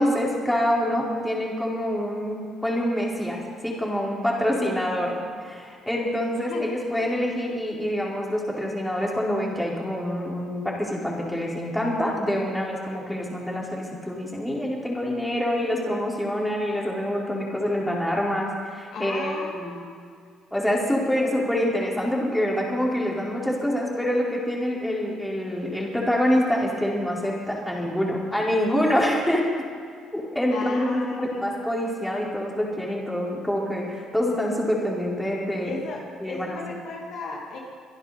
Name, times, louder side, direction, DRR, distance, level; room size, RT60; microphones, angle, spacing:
voice 1, 0.0-19.7 20.5-29.7 30.1-35.7 36.2-36.6, equal, 5° left, -3 dB, 4.4 m, -26 dB
voice 2, 18.9-19.9 30.5-31.5 35.6-37.6, left 3 dB, 65° left, -1 dB, 2.5 m, -35 dB
24.5 x 10.5 x 4.3 m, 2.2 s
hypercardioid pair, 60°, 0 cm